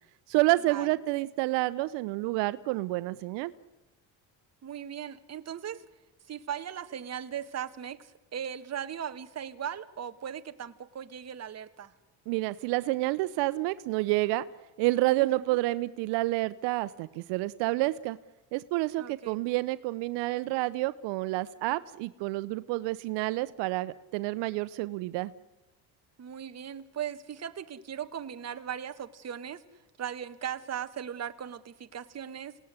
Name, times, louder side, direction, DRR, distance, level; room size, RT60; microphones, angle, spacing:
voice 1, 0.3-3.5 12.3-14.5 14.8-18.2 18.5-25.3, right 19 dB, 90° right, 15 dB, 1.0 m, -29 dB
voice 2, 4.6-5.8 6.3-11.9 15.2-15.5 19.0-19.4 26.2-29.6 30.0-32.6, right 9 dB, 40° right, 9 dB, 1.6 m, -38 dB
28.0 x 18.0 x 9.6 m, 1.0 s
cardioid pair, 105°, 41 cm